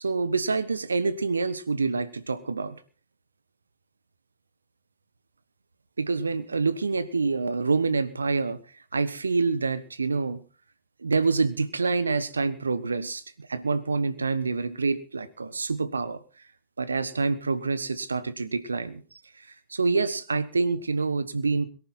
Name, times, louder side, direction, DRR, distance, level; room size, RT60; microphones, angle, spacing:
voice 1, 0.0-2.8 6.0-8.6 8.9-10.4 11.0-16.2 16.8-19.0 19.7-21.6, right 4 dB, 75° right, 15 dB, 1.2 m, -27 dB
22.5 x 11.0 x 4.3 m, 0.37 s
figure-of-eight pair, 90°, 0 cm